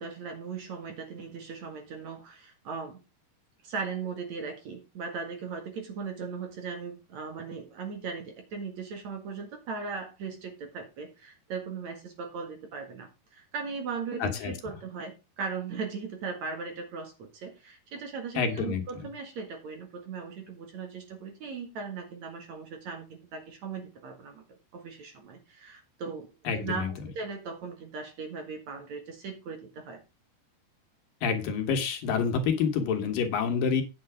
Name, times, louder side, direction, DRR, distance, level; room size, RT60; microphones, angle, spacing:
voice 1, 0.0-3.0 3.6-24.4 24.7-30.0, right 5 dB, 55° right, 2.8 m, -38 dB
voice 2, 14.2-14.5 18.4-18.8 26.5-26.9 31.2-33.8, left 6 dB, 70° left, 3.1 m, -27 dB
9.7 x 6.8 x 4.9 m
omnidirectional pair, 4.3 m